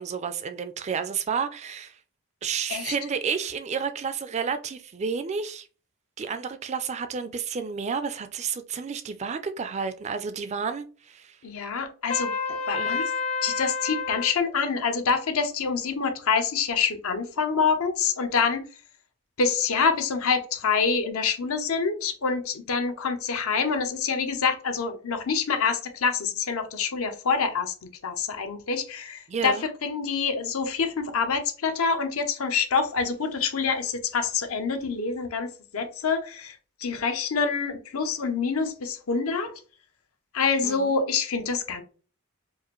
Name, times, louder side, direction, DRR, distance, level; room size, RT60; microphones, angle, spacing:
voice 1, 0.0-2.0 2.4-5.7 6.2-11.4 12.8-13.0 29.3-29.6 40.6-40.9, right 6 dB, 30° right, 0.3 m, -31 dB
voice 2, 11.4-13.0 13.4-18.7 19.4-27.7 28.0-39.6 40.3-41.8, left 5 dB, 75° left, 0.7 m, -26 dB
Trumpet, 12.1-14.3, left 5 dB, 30° left, 0.5 m, -29 dB
4.8 x 2.5 x 3.0 m
head